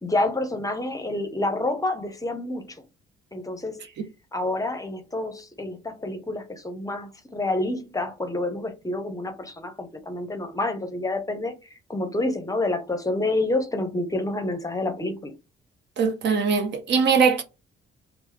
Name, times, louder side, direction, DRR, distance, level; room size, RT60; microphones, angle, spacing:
voice 1, 0.0-2.8 3.3-3.8 4.3-11.5 11.9-15.3, left 2 dB, 15° left, 0.7 m, -28 dB
voice 2, 16.0-17.4, right 5 dB, 65° right, 0.6 m, -21 dB
3.0 x 2.0 x 3.2 m
cardioid pair, 90°, 20 cm